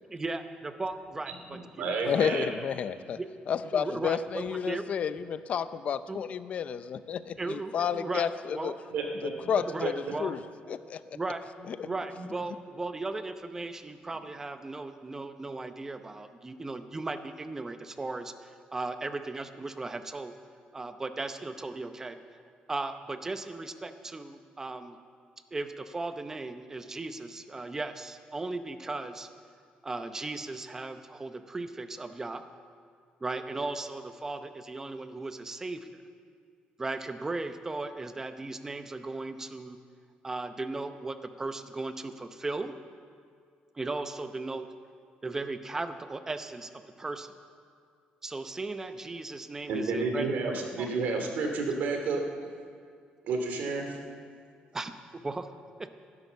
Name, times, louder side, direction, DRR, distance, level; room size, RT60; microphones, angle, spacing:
voice 1, 0.1-2.1 2.4-2.5 3.1-3.3 3.7-4.8 6.1-6.2 7.4-8.3 8.5-8.7 9.7-10.3 11.1-11.4 11.8-20.3 20.7-22.2 22.7-25.0 25.5-29.3 29.8-32.4 33.2-35.9 36.8-39.8 40.2-42.7 43.7-44.7 45.2-46.7 47.0-47.3 48.2-50.3 50.8-50.9 54.7-55.5 55.8-55.9, right 3 dB, 15° right, 9 dB, 0.7 m, -36 dB
voice 2, 1.5-2.5 8.9-9.3 9.8-9.9 12.2-12.3 49.7-52.2 53.2-54.0, right 3 dB, 65° right, 3 dB, 2.5 m, -31 dB
voice 3, 2.0-3.2 3.5-8.7 9.2-9.9 10.2-10.4 10.7-11.2 11.7-11.9, left 7 dB, 45° left, 13 dB, 0.5 m, -31 dB
15.0 x 11.0 x 6.9 m, 2.2 s
cardioid pair, 150°, 3 cm